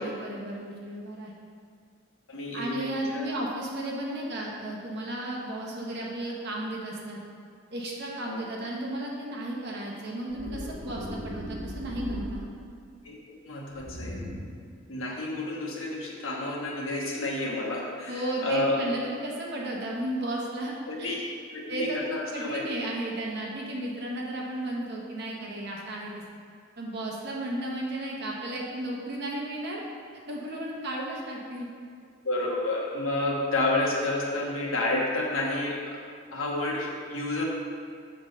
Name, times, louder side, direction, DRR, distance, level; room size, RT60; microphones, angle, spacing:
voice 1, 0.0-1.3 2.5-7.2 7.7-12.4 18.1-20.7 21.0-21.2 21.7-26.2 26.8-29.8 30.3-31.7, right 1 dB, 55° right, -2 dB, 1.2 m, -34 dB
voice 2, 2.3-3.2 8.2-8.4 13.0-13.1 13.4-14.2 14.9-18.8 20.9-21.2 21.5-22.6 32.2-36.0 36.3-37.4, left 2 dB, 70° left, -2 dB, 1.2 m, -30 dB
sound 1, 10.3-12.8 13.7-14.7, equal, 20° right, 1.3 m, -37 dB
7.1 x 3.9 x 5.4 m, 2.2 s
head